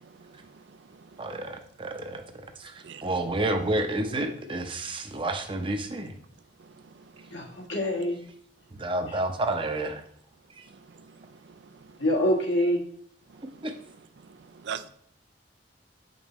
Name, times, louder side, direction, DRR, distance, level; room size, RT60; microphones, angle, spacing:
voice 1, 0.2-0.3 2.8-3.0 7.2-7.3 11.0-11.1 13.3-13.4 14.6-14.9, right 7 dB, 70° right, 13 dB, 0.4 m, -38 dB
voice 2, 1.2-2.2 2.6-6.1 8.7-10.0 10.6-10.7 13.6-13.7, right 1 dB, 30° right, 6 dB, 0.7 m, -30 dB
voice 3, 7.3-8.2 12.0-12.8, equal, 85° left, -1 dB, 1.5 m, -25 dB
7.7 x 5.2 x 3.1 m, 0.63 s
head